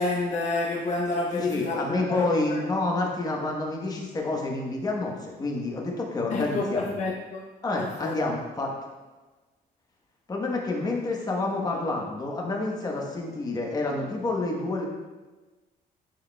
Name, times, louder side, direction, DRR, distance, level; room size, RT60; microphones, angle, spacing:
voice 1, 0.0-2.7 6.3-7.4 7.8-8.2, left 3 dB, 45° left, -2 dB, 0.7 m, -29 dB
voice 2, 1.3-7.0 7.6-8.7 10.3-14.9, left 2 dB, 25° left, -1 dB, 1.1 m, -28 dB
10.5 x 4.7 x 2.3 m, 1.2 s
cardioid pair, 140°, 17 cm